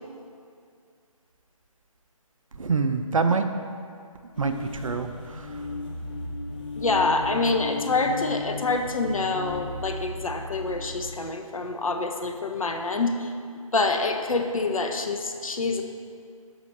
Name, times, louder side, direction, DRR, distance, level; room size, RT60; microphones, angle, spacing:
voice 1, 2.5-3.4 4.4-5.5, right 4 dB, 65° right, 7 dB, 0.5 m, -26 dB
sound 1, 4.3-11.2, left 2 dB, 15° left, 0.5 m, -35 dB
voice 2, 6.8-13.3 13.7-15.8, left 3 dB, 70° left, 5 dB, 0.7 m, -26 dB
6.9 x 5.6 x 3.3 m, 2.3 s
figure-of-eight pair, 145°, 18 cm